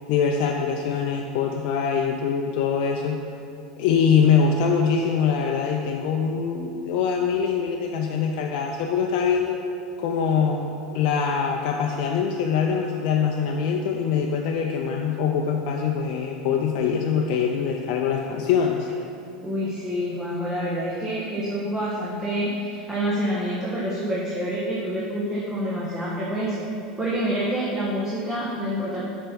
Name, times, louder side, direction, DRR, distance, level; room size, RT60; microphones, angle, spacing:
voice 1, 0.1-3.2 3.8-9.6 10.0-18.9, left 6 dB, 60° left, 1 dB, 0.5 m, -23 dB
voice 2, 19.4-26.7 27.0-29.0, equal, 15° right, -6 dB, 1.4 m, -27 dB
7.3 x 4.5 x 5.2 m, 2.6 s
hypercardioid pair, 90°, 4 cm